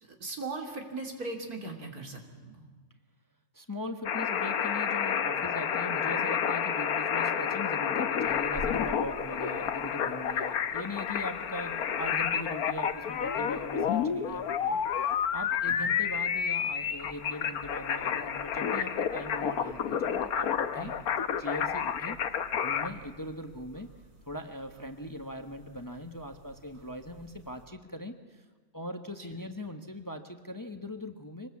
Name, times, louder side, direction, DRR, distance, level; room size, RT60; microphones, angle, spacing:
voice 1, 0.0-2.7 15.7-15.8 20.8-20.9, right 3 dB, 80° right, 3 dB, 3.4 m, -39 dB
voice 2, 3.5-20.9 21.4-22.2 22.5-23.9 24.3-28.4 28.7-31.5, left 1 dB, 15° left, 7 dB, 1.1 m, -40 dB
sound 1, 4.1-22.9, left 8 dB, 80° left, 1.5 m, -30 dB
sound 2, 8.0-27.7, equal, 65° right, 3.9 m, -52 dB
25.0 x 20.0 x 8.5 m, 1.4 s
omnidirectional pair, 1.6 m